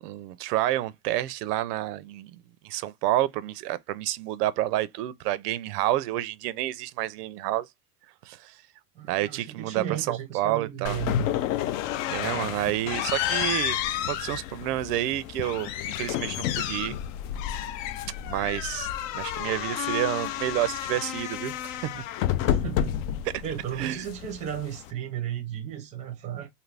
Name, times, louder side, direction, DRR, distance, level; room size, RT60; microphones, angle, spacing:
voice 1, 0.0-7.7 8.2-8.6 9.1-11.0 12.1-13.8 14.0-17.0 18.3-18.9 19.1-22.0 23.3-23.4 23.8-24.1, right 14 dB, 90° right, 0.6 m, -29 dB
voice 2, 8.9-11.3 22.4-22.9 23.4-26.5, right 10 dB, 15° right, 0.5 m, -34 dB
sound 1, 10.9-24.9, left 11 dB, 60° left, 0.5 m, -30 dB
2.7 x 2.5 x 3.2 m
supercardioid pair, 155°, 46 cm